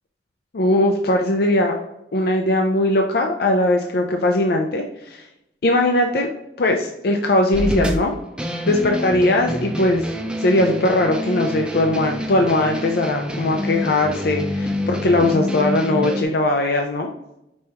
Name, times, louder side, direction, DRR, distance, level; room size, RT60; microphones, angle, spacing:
voice 1, 0.5-1.8 2.1-5.3 5.6-6.3 6.6-8.1 8.6-10.0 10.4-17.1, left 1 dB, 60° left, 3 dB, 0.5 m, -19 dB
sound 1, 7.5-16.2, equal, 5° right, 0.5 m, -27 dB
5.3 x 3.3 x 2.9 m, 0.86 s
head